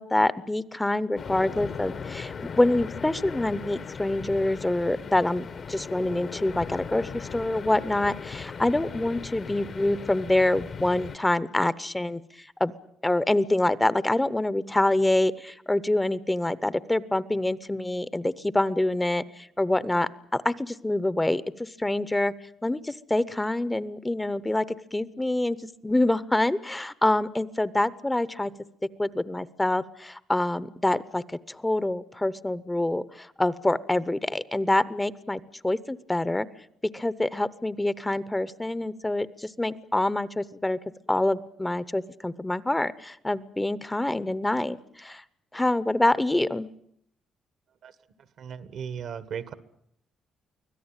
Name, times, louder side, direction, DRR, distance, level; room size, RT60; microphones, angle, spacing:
voice 1, 0.0-12.7 13.0-22.3 22.6-25.6 25.8-28.5 29.0-36.5 36.9-40.8 41.1-45.2 45.5-46.7, left 1 dB, 10° left, 17 dB, 0.8 m, -26 dB
sound 1, 1.1-11.2, left 6 dB, 50° left, 1.2 m, -38 dB
voice 2, 48.4-49.5, right 7 dB, 65° right, 14 dB, 1.5 m, -36 dB
24.5 x 16.5 x 9.0 m, 0.72 s
cardioid pair, 90°, 0 cm